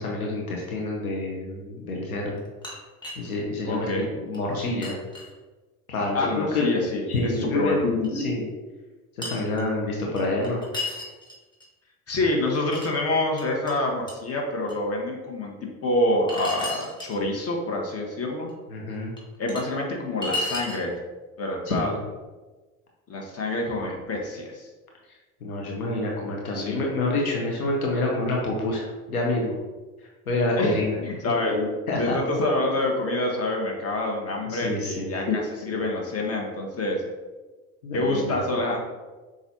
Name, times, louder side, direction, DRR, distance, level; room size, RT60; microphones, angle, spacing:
voice 1, 0.0-2.4 3.2-5.0 5.9-7.8 8.2-8.4 9.2-10.6 18.7-19.1 21.7-22.0 25.4-28.8 29.1-29.5 30.3-31.0 31.9-32.2 34.5-35.1 37.8-38.4, left 2 dB, 90° left, -1 dB, 0.8 m, -27 dB
sound 1, 2.4-3.3 3.9-4.0 4.3-4.4 4.8-5.3 7.1-7.2 8.0-8.1 9.2-9.6 10.2-11.6 12.2-12.9 13.4-13.7 14.1-14.2 14.7-14.8 16.3-17.1 18.5-18.6 19.2-19.6 20.2-20.8, left 2 dB, 10° left, 1.3 m, -33 dB
voice 2, 3.6-4.1 6.1-8.2 12.1-15.5 15.8-18.5 19.4-20.9 21.4-21.9 23.1-24.7 26.5-26.8 30.5-37.0 37.9-38.8, left 2 dB, 35° left, 0 dB, 1.3 m, -27 dB
7.0 x 2.6 x 2.8 m, 1.2 s
hypercardioid pair, 60°, 42 cm